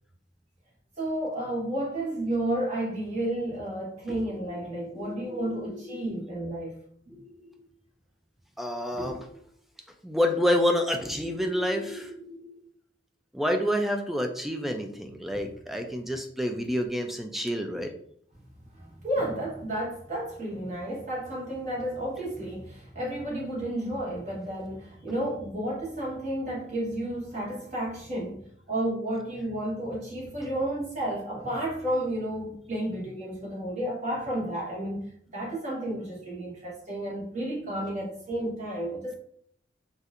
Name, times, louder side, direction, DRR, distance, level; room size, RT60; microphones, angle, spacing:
voice 1, 1.0-6.8 7.1-7.2 8.9-9.0 18.7-39.1, right 1 dB, 40° right, -5 dB, 1.3 m, -32 dB
voice 2, 4.6-6.2 7.1-7.3 8.6-9.3 10.0-12.6 13.3-17.9, equal, ahead, 4 dB, 0.3 m, -29 dB
4.2 x 2.5 x 2.5 m, 0.65 s
head